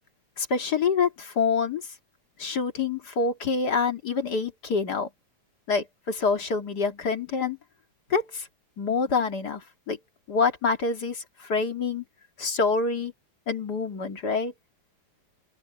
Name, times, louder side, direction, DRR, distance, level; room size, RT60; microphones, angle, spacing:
voice 1, 0.4-1.9 2.4-5.1 5.7-7.6 8.1-8.5 8.8-10.0 10.3-12.0 12.4-13.1 13.5-14.5, left 5 dB, 35° left, 2.4 m, -26 dB
open air
omnidirectional pair, 3.4 m